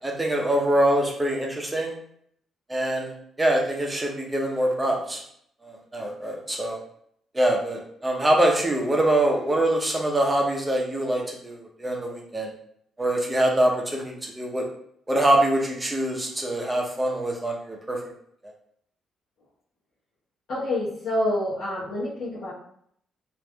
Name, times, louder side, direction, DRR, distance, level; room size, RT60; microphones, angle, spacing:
voice 1, 0.0-2.0 2.7-3.1 3.4-5.2 5.6-6.8 7.3-12.5 13.0-14.7 15.1-18.0 18.4-18.5, right 1 dB, 15° right, 0 dB, 0.7 m, -24 dB
voice 2, 20.5-22.5, left 1 dB, 65° left, -10 dB, 0.9 m, -27 dB
3.3 x 2.5 x 2.2 m, 0.67 s
cardioid pair, 90°, 0 cm